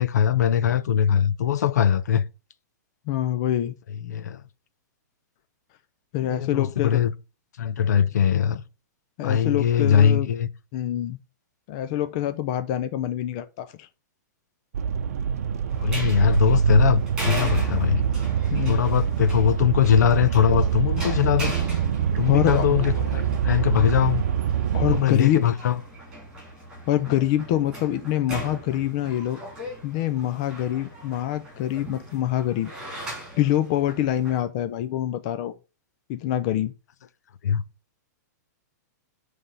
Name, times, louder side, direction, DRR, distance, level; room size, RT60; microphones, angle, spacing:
voice 1, 0.0-2.3 4.0-4.4 6.3-7.1 7.6-8.6 9.2-10.5 15.8-18.0 18.7-21.5 22.2-24.2 24.9-25.8 37.4-37.6, left 9 dB, 65° left, 0.7 m, -21 dB
voice 2, 3.1-3.7 6.1-7.0 9.2-10.3 10.7-11.2 11.7-13.9 18.5-18.8 22.2-22.7 24.7-25.5 26.9-29.4 29.8-33.0 33.4-35.5 36.1-36.7, left 12 dB, 25° left, 0.4 m, -25 dB
sound 1, 14.7-25.0, right 8 dB, 55° right, 0.7 m, -24 dB
sound 2, 15.7-34.4, equal, 5° right, 2.6 m, -39 dB
9.1 x 3.4 x 5.6 m
hypercardioid pair, 180°, 10 cm